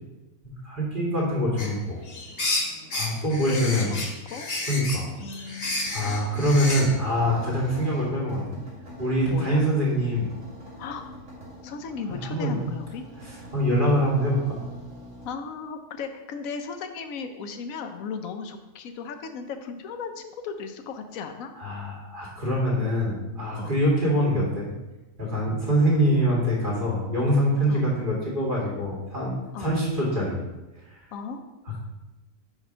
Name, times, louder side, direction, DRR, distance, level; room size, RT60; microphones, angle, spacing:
voice 1, 0.6-2.0 2.9-3.9 4.7-5.1 5.9-8.6 9.0-10.3 12.1-12.6 13.2-14.6 21.6-24.7 25.2-30.4 30.9-31.0 31.7-31.8, equal, 40° right, -6 dB, 2.1 m, -24 dB
sound 1, 1.6-6.9, left 2 dB, 50° left, 1.2 m, -31 dB
voice 2, 3.5-4.5 5.2-6.0 9.3-9.6 10.8-11.0 11.6-13.0 15.2-21.5 23.5-23.8 27.7-27.9 29.5-29.7 31.1-31.4, left 5 dB, 85° left, 7 dB, 1.1 m, -36 dB
sound 2, 5.5-15.3, equal, 75° right, 2.6 m, -44 dB
4.9 x 4.9 x 5.4 m, 1.1 s
omnidirectional pair, 1.4 m